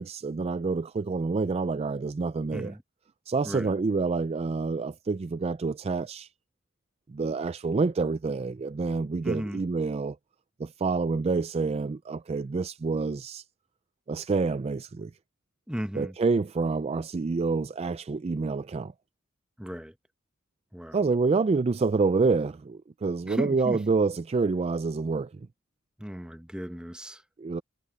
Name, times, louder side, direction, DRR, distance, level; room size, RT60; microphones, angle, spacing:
voice 1, 0.0-2.7 3.3-6.3 7.1-10.2 10.6-13.4 14.1-15.1 15.9-18.9 20.9-25.5 27.4-27.6, right 4 dB, 30° right, 0.4 m, -27 dB
voice 2, 9.2-9.6 15.7-16.1 19.6-19.9 20.7-21.0 23.2-23.8 26.0-27.2, equal, 5° right, 1.1 m, -35 dB
head